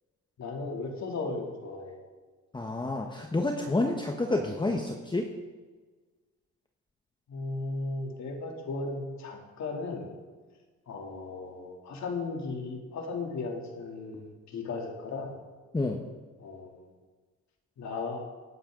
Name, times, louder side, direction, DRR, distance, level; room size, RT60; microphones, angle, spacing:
voice 1, 0.4-2.0 7.3-10.1 10.9-15.3 16.4-16.8 17.8-18.2, left 3 dB, 65° left, 1 dB, 2.9 m, -36 dB
voice 2, 2.5-5.3 15.7-16.0, left 2 dB, 15° left, 2 dB, 1.2 m, -29 dB
18.5 x 10.0 x 3.9 m, 1.3 s
cardioid pair, 90°, 30 cm